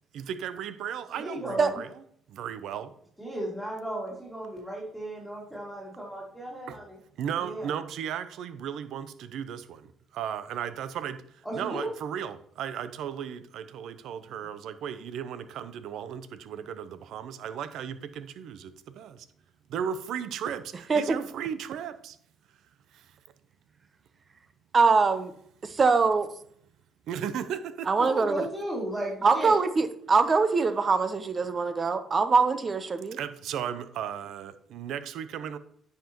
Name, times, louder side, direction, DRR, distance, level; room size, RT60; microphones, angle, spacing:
voice 1, 0.1-1.9 2.3-2.9 6.7-6.8 7.2-19.3 19.7-22.2 22.9-23.1 27.1-28.1 33.1-35.6, right 8 dB, 75° right, 0.6 m, -35 dB
voice 2, 1.2-1.8 3.2-7.0 7.4-7.7 11.4-11.9 28.0-29.5, right 1 dB, 5° right, 2.4 m, -35 dB
voice 3, 24.7-25.3 25.6-26.3 27.9-28.4 29.2-33.2, right 4 dB, 35° right, 0.8 m, -23 dB
9.8 x 5.7 x 3.0 m
cardioid pair, 90°, 0 cm